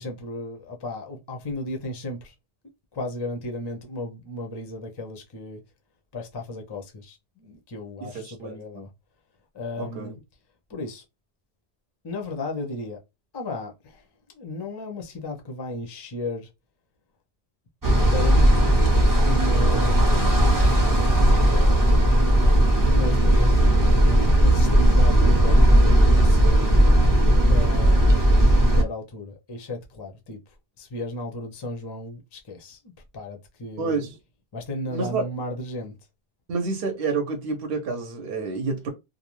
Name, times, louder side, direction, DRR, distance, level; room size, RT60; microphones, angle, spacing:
voice 1, 0.0-2.3 2.9-5.6 6.1-8.9 9.5-10.2 10.7-11.0 12.0-13.0 13.3-14.0 14.3-16.5 18.1-18.8 19.2-20.8 21.4-22.2 22.9-26.7 27.5-30.4 30.8-32.8 33.1-34.1 34.5-35.9, left 1 dB, 35° left, 0.4 m, -34 dB
voice 2, 8.0-8.9 9.8-10.1 21.2-21.6 22.1-22.3 33.8-34.2 34.9-35.3 36.5-38.9, right 4 dB, 65° right, 0.8 m, -29 dB
sound 1, 17.8-28.8, right 1 dB, 25° right, 0.6 m, -17 dB
2.5 x 2.0 x 3.0 m
omnidirectional pair, 1.1 m